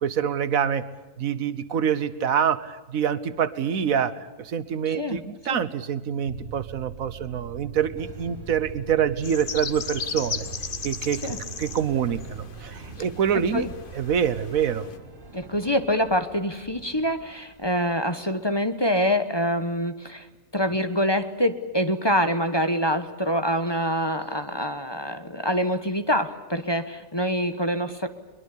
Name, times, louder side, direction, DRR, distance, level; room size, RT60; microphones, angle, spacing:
voice 1, 0.0-0.8 1.2-4.1 4.4-10.4 10.8-11.3 11.6-13.7 13.9-14.9, right 8 dB, 80° right, 14 dB, 1.5 m, -26 dB
voice 2, 4.9-5.2 5.5-5.6 11.2-11.4 13.5-13.7 15.3-20.3 20.5-28.1, equal, 20° left, 9 dB, 1.1 m, -25 dB
sound 1, 6.3-14.1, right 7 dB, 50° right, 1.5 m, -42 dB
sound 2, 7.9-18.6, right 1 dB, 35° right, 6.0 m, -47 dB
sound 3, 9.2-15.0, left 6 dB, 40° left, 1.1 m, -37 dB
22.5 x 22.0 x 8.5 m, 1.2 s
omnidirectional pair, 1.4 m